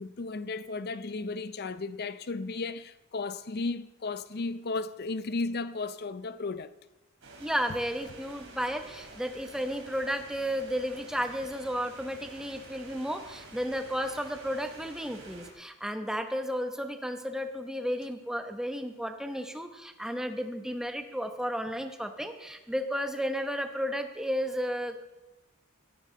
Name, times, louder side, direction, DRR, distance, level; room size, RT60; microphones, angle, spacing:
voice 1, 0.0-6.7, left 3 dB, 45° left, 0.6 m, -34 dB
sound 1, 7.2-15.5, right 2 dB, 60° right, 3.5 m, -49 dB
voice 2, 7.4-25.0, equal, 5° right, 0.9 m, -33 dB
16.5 x 13.5 x 3.8 m
head